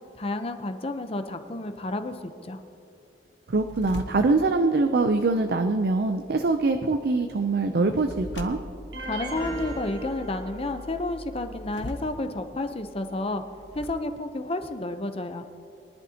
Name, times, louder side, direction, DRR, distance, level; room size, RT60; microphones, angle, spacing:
voice 1, 0.1-2.6 9.0-13.4 13.7-15.4, left 2 dB, 35° left, 8 dB, 0.7 m, -31 dB
sound 1, 3.5-13.9, left 1 dB, 90° left, 1.0 m, -43 dB
voice 2, 3.5-8.6, right 3 dB, 60° right, 7 dB, 0.5 m, -23 dB
sound 2, 8.9-11.0, right 1 dB, 85° right, 1.7 m, -38 dB
sound 3, 9.3-9.8, equal, 65° left, 2.4 m, -41 dB
23.0 x 11.0 x 2.9 m, 2.5 s
head